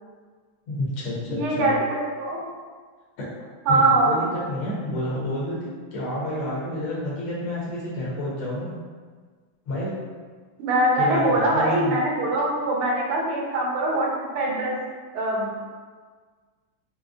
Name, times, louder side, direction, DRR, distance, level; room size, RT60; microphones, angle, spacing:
voice 1, 0.7-1.7 3.2-3.3 3.7-8.7 9.7-9.9 11.0-12.0, left 1 dB, 80° left, -6 dB, 1.8 m, -29 dB
voice 2, 1.3-2.4 3.7-4.2 10.6-14.1 14.3-14.7 15.1-15.6, right 2 dB, 85° right, -3 dB, 1.6 m, -22 dB
4.9 x 2.1 x 2.4 m, 1.5 s
omnidirectional pair, 2.4 m